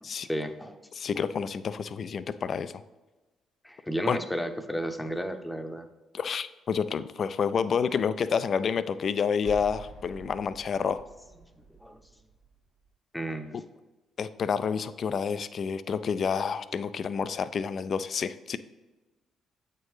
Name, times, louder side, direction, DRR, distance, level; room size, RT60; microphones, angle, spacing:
voice 1, 0.0-0.8 1.1-1.3 3.6-5.9 7.9-8.0 11.7-12.0 13.1-13.6, equal, 10° left, 8 dB, 0.8 m, -33 dB
voice 2, 1.0-2.7 4.1-4.2 6.1-11.0 14.2-18.6, left 6 dB, 50° left, 14 dB, 0.3 m, -29 dB
sound 1, 9.4-12.9, right 5 dB, 85° right, 1.8 m, -47 dB
8.4 x 4.5 x 3.1 m, 1.1 s
hypercardioid pair, 45°, 0 cm